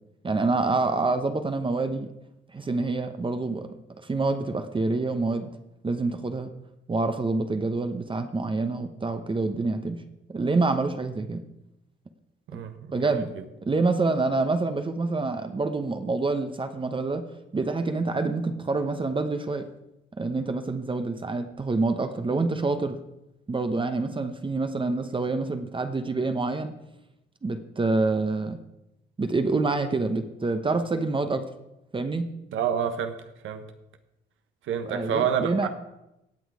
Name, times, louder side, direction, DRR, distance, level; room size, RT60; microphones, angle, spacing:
voice 1, 0.2-2.1 2.5-3.8 4.1-5.5 5.8-6.5 6.9-10.0 10.3-11.4 12.9-13.3 13.6-17.2 17.5-19.7 20.2-23.0 23.5-26.7 27.4-28.6 29.2-31.4 31.9-32.3 34.9-35.7, right 3 dB, 25° right, 8 dB, 0.9 m, -27 dB
voice 2, 12.5-13.2 32.5-33.1 33.4-33.6 34.7-35.7, right 8 dB, 80° right, 8 dB, 1.2 m, -28 dB
17.5 x 6.2 x 4.8 m, 0.88 s
cardioid pair, 90°, 20 cm